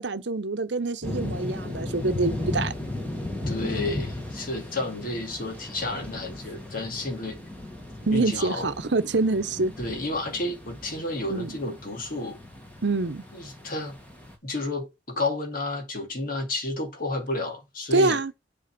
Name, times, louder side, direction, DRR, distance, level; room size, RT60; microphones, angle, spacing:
voice 1, 0.0-2.7 8.1-9.7 11.3-11.6 12.8-13.2 17.9-18.3, right 3 dB, 75° right, 0.9 m, -25 dB
sound 1, 1.0-14.3, left 1 dB, 10° left, 2.2 m, -36 dB
voice 2, 3.5-7.4 8.1-8.7 9.8-12.4 13.3-13.9 14.4-18.2, left 2 dB, 50° left, 2.4 m, -31 dB
7.7 x 4.2 x 6.0 m
head